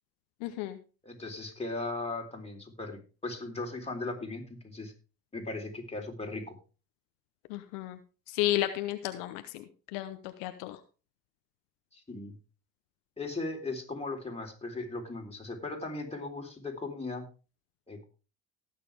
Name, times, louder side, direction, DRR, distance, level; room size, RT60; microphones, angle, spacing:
voice 1, 0.4-0.8 7.5-8.0 8.3-10.8, left 14 dB, 75° left, 9 dB, 1.0 m, -33 dB
voice 2, 1.0-4.9 5.3-6.5 11.9-12.4 13.2-17.3 17.9-18.0, left 2 dB, 15° left, 1 dB, 3.7 m, -38 dB
18.5 x 6.8 x 3.4 m, 0.33 s
hypercardioid pair, 65°, 40 cm